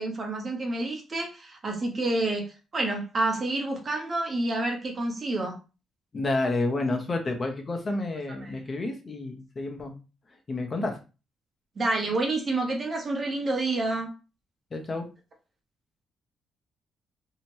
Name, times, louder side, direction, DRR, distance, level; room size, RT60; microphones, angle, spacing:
voice 1, 0.0-5.6 8.4-8.5 11.8-14.1, right 2 dB, 40° right, 0.9 m, -28 dB
voice 2, 6.1-9.9 10.5-11.0 14.7-15.1, left 2 dB, 40° left, 0.7 m, -30 dB
2.8 x 2.1 x 3.0 m
cardioid pair, 70°, 0 cm